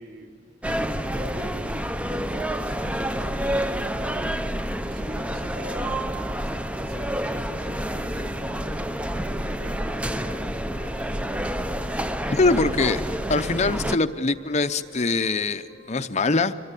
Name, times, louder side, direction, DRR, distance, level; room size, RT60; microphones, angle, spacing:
voice 1, 0.0-12.8, equal, 50° right, 1 dB, 3.3 m, -43 dB
sound 1, 0.6-14.0, right 1 dB, 5° right, 0.6 m, -28 dB
sound 2, 1.9-16.0, left 4 dB, 85° right, 7.6 m, -52 dB
voice 2, 12.3-13.0 13.3-16.5, left 3 dB, 35° left, 11 dB, 0.7 m, -23 dB
26.0 x 22.5 x 8.4 m, 2.6 s
head